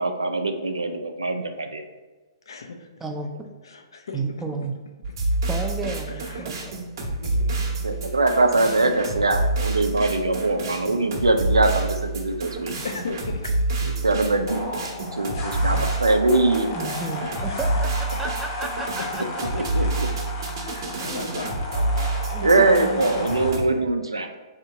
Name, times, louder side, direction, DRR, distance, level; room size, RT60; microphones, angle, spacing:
voice 1, 0.0-1.8 7.8-12.7 14.0-14.6 15.0-16.7 19.5-20.1 22.4-24.3, right 2 dB, 80° right, 6 dB, 0.4 m, -22 dB
voice 2, 2.5-3.0 3.6-4.2 6.1-6.6 7.2-8.1 12.8-13.9 16.8-17.8 18.5-18.6 19.0-19.1 19.8-19.9 20.6-22.1 22.7-22.8, left 4 dB, 65° left, 4 dB, 0.5 m, -38 dB
voice 3, 3.0-3.3 4.1-4.7 5.5-6.7 15.7-15.9 16.7-17.9 18.2-19.2 20.6-21.2 22.3-23.0, right 3 dB, 10° right, 3 dB, 0.4 m, -32 dB
sound 1, 5.0-23.6, right 2 dB, 50° right, 0.8 m, -28 dB
sound 2, 14.5-23.5, left 3 dB, 45° left, 1.0 m, -34 dB
3.4 x 2.8 x 3.8 m, 1.2 s
figure-of-eight pair, 120°, 3 cm